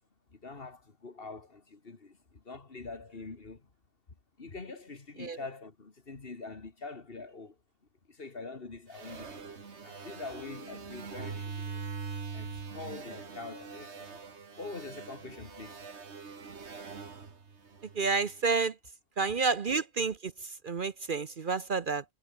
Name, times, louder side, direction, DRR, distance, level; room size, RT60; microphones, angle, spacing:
voice 1, 0.3-3.7 4.4-7.6 8.1-9.5 9.8-14.2 14.6-15.8, left 3 dB, 50° left, 2.2 m, -45 dB
sound 1, 8.9-18.4, right 5 dB, 65° right, 2.1 m, -43 dB
voice 2, 17.9-18.8 19.2-22.0, right 4 dB, 50° right, 1.0 m, -30 dB
omnidirectional pair, 1.2 m